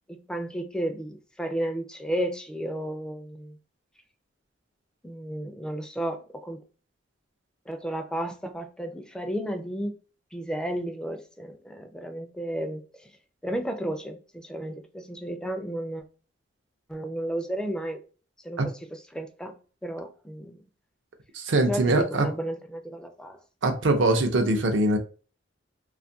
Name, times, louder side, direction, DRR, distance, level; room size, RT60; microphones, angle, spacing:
voice 1, 0.1-3.6 5.0-6.6 7.7-9.9 10.3-13.1 13.4-16.0 16.9-18.0 18.4-20.6 21.7-23.4, right 1 dB, 5° left, 0.3 m, -33 dB
voice 2, 21.3-22.3 23.6-25.0, right 2 dB, 75° right, 0.5 m, -22 dB
2.5 x 2.3 x 2.6 m
head